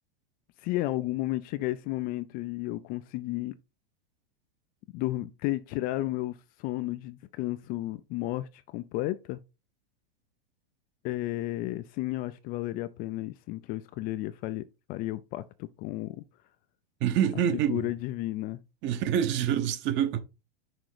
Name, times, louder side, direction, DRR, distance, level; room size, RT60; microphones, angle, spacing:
voice 1, 0.6-3.6 4.9-9.4 11.0-16.2 17.7-18.6, left 16 dB, 30° left, 0.3 m, -33 dB
voice 2, 17.0-17.9 18.8-20.2, right 9 dB, 40° right, 1.0 m, -26 dB
6.1 x 3.7 x 4.9 m
hypercardioid pair, 120°, 30 cm